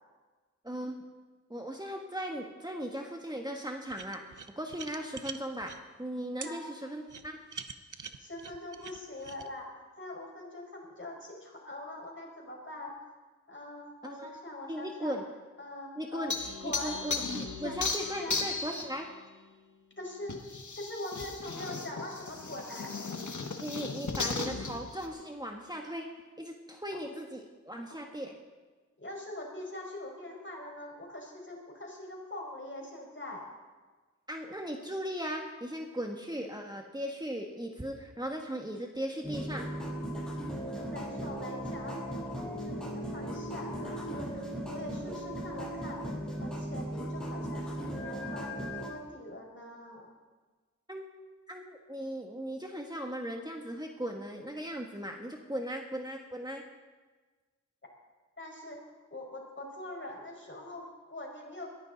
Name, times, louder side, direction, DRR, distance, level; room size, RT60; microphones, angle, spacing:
voice 1, 0.6-1.0 1.5-4.2 4.6-5.7 6.0-7.4 14.0-14.3 14.7-15.2 16.0-16.3 16.6-19.1 23.6-26.1 26.4-28.3 34.3-39.7 50.9-51.0 51.5-56.6, equal, 15° right, 1 dB, 1.5 m, -38 dB
sound 1, 3.9-5.8 6.4-6.5 7.1-9.5, right 5 dB, 85° right, 0.8 m, -44 dB
voice 2, 8.2-13.0 13.5-15.2 15.6-16.4 16.6-17.0 17.6-17.8 18.2-18.5 20.0-20.4 20.8-22.9 29.0-33.5 40.7-46.0 46.4-50.1 58.4-61.8, left 1 dB, 40° left, -1 dB, 5.4 m, -43 dB
sound 2, 16.3-19.0 20.3-25.1, left 4 dB, 75° left, 1.5 m, -36 dB
sound 3, 39.2-48.9, equal, 5° left, 6.8 m, -37 dB
21.0 x 14.5 x 4.1 m, 1.3 s
wide cardioid pair, 50°, 30 cm